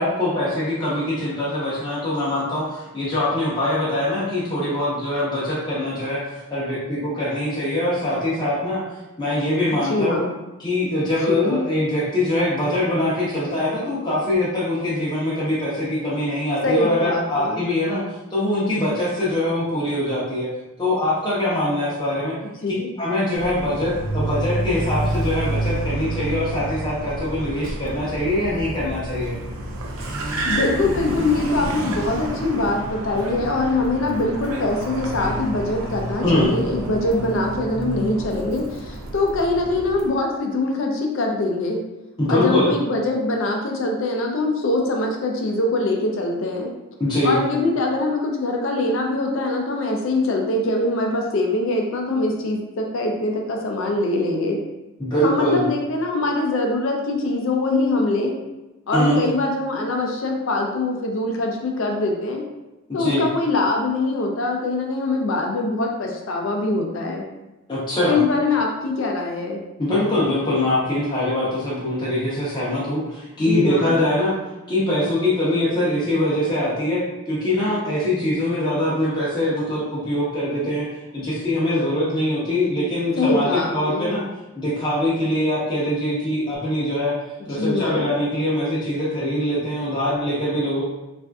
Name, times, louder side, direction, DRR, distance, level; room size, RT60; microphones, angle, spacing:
voice 1, 0.0-8.8 9.2-10.2 10.6-18.0 18.3-20.5 20.8-22.4 23.0-29.3 36.2-36.5 42.2-42.7 47.0-47.3 55.0-55.6 58.9-59.2 62.9-63.2 67.7-68.2 69.8-74.3 74.7-80.9 81.1-84.2 84.6-87.1 87.5-90.8, left 1 dB, 20° left, -9 dB, 0.7 m, -23 dB
voice 2, 9.7-10.3 11.3-11.6 16.6-17.6 22.4-22.9 30.4-41.8 42.3-46.7 47.2-54.6 55.2-58.3 58.9-62.4 62.9-67.2 68.0-69.6 73.5-74.0 83.1-84.1 87.4-88.1, left 2 dB, 65° left, 1 dB, 0.4 m, -23 dB
Car, 23.3-40.1, right 1 dB, 80° right, 0.5 m, -29 dB
3.5 x 2.5 x 2.2 m, 1.0 s
head